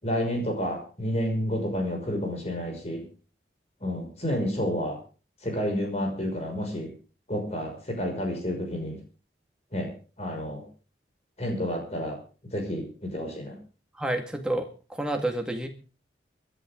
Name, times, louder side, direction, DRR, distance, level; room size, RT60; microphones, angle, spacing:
voice 1, 0.0-3.0 3.8-5.0 5.4-6.9 7.3-9.0 9.7-9.9 10.2-10.6 11.4-12.2 12.5-13.5, equal, 35° left, 2 dB, 5.8 m, -30 dB
voice 2, 14.0-15.7, right 1 dB, 5° right, 4 dB, 1.9 m, -29 dB
25.0 x 11.0 x 3.8 m, 0.36 s
head